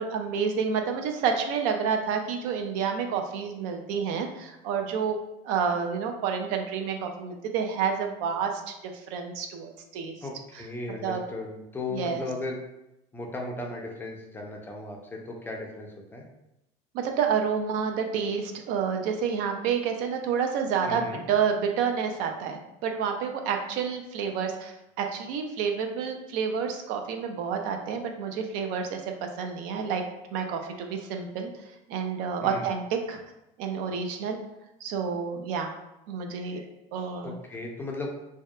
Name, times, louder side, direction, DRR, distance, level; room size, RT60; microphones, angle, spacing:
voice 1, 0.0-5.2 5.4-10.1 10.5-10.6 11.0-11.2 11.9-12.2 16.9-30.0 30.3-33.2 33.6-34.4 34.8-35.7 36.1-36.6 36.9-37.4, right 6 dB, 65° right, 4 dB, 0.4 m, -29 dB
voice 2, 10.2-12.6 13.1-16.2 20.8-21.2 32.4-32.7 37.2-38.1, left 2 dB, 15° left, 0 dB, 0.4 m, -36 dB
2.7 x 2.1 x 2.2 m, 0.88 s
supercardioid pair, 115°, 15 cm